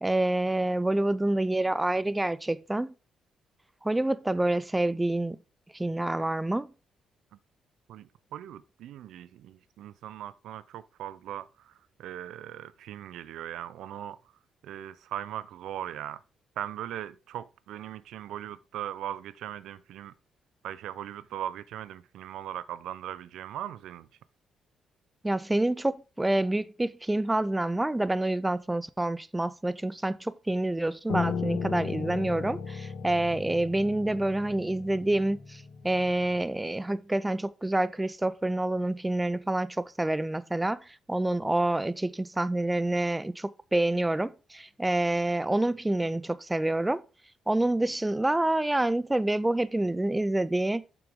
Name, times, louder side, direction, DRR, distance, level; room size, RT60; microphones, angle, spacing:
voice 1, 0.0-2.9 3.8-5.4 5.7-6.7 25.2-40.8 41.1-47.0 47.5-50.8, right 1 dB, 10° right, 0.4 m, -27 dB
voice 2, 7.9-11.7 12.0-14.2 14.6-16.2 16.6-20.1 20.6-24.1, right 11 dB, 80° right, 0.4 m, -39 dB
Piano, 31.1-36.4, left 5 dB, 70° left, 1.2 m, -35 dB
7.0 x 6.0 x 3.6 m
cardioid pair, 90°, 0 cm